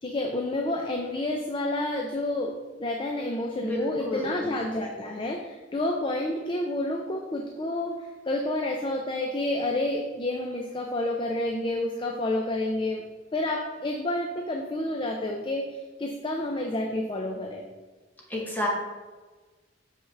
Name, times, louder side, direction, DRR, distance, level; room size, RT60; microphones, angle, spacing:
voice 1, 0.0-13.0 13.3-17.6, left 1 dB, 25° left, 2 dB, 0.5 m, -29 dB
voice 2, 3.6-4.3 18.3-18.7, left 1 dB, 10° left, -3 dB, 1.1 m, -30 dB
6.6 x 5.6 x 3.3 m, 1.3 s
head